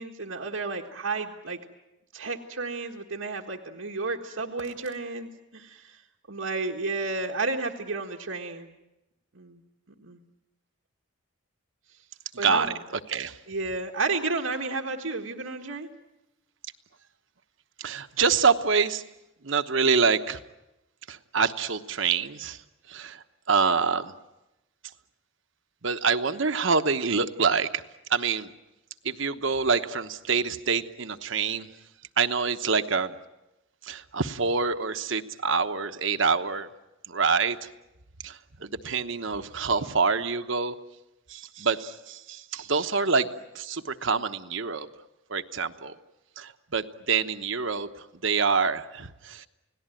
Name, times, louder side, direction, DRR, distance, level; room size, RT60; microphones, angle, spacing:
voice 1, 0.0-1.6 2.1-6.0 6.3-8.7 9.3-9.6 10.0-10.2 12.4-12.8 13.5-15.9, right 3 dB, 85° right, -2 dB, 1.6 m, -32 dB
voice 2, 12.3-13.4 17.8-19.0 19.4-20.4 21.1-22.6 22.9-24.1 25.8-27.8 28.1-28.5 29.0-31.7 32.2-33.1 33.8-36.7 37.1-37.7 38.2-40.7 41.3-43.3 43.5-44.9 45.3-45.9 46.4-49.5, right 5 dB, 60° right, 9 dB, 1.1 m, -26 dB
29.5 x 18.5 x 9.2 m, 0.97 s
head